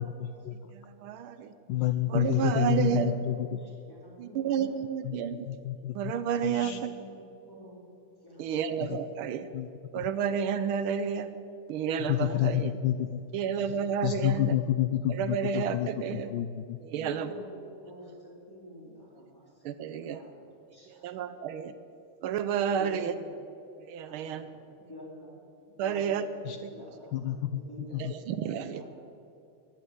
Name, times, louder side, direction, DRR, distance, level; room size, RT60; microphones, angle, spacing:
voice 1, 0.0-0.5 1.7-3.6 5.0-5.2 5.5-6.1 6.4-6.8 8.8-9.0 9.5-9.7 10.0-10.1 12.0-13.2 14.0-16.8 26.4-26.6 27.1-28.1, left 12 dB, 75° left, 10 dB, 1.1 m, -29 dB
voice 2, 0.5-1.5 2.1-3.1 4.2-5.5 5.9-6.7 8.4-9.5 9.9-11.3 11.7-12.7 13.3-14.5 15.1-16.3 16.8-17.3 19.6-20.2 21.0-21.7 22.2-23.1 23.9-24.5 25.8-26.3 28.0-28.8, right 8 dB, 80° right, 12 dB, 1.5 m, -30 dB
voice 3, 2.7-4.8 6.5-7.8 8.2-8.7 9.3-9.5 13.4-13.7 16.9-19.6 20.1-21.3 22.7-23.4 24.1-25.4 25.8-28.1 28.6-28.8, equal, 10° left, -4 dB, 3.9 m, -48 dB
14.5 x 10.0 x 8.8 m, 2.6 s
omnidirectional pair, 2.3 m